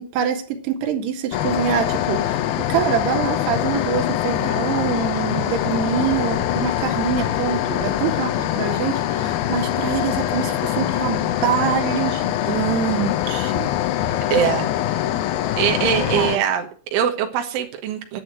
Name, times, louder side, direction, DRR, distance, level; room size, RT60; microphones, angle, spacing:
voice 1, 0.0-2.4 2.7-13.7 14.4-14.5 15.8-16.4, right 8 dB, 65° right, 4 dB, 3.7 m, -25 dB
sound 1, 1.3-16.4, left 12 dB, 75° left, 2.3 m, -23 dB
voice 2, 14.3-14.7 15.6-18.2, right 9 dB, 85° right, 4 dB, 3.9 m, -22 dB
11.0 x 8.5 x 8.9 m, 0.41 s
omnidirectional pair, 5.3 m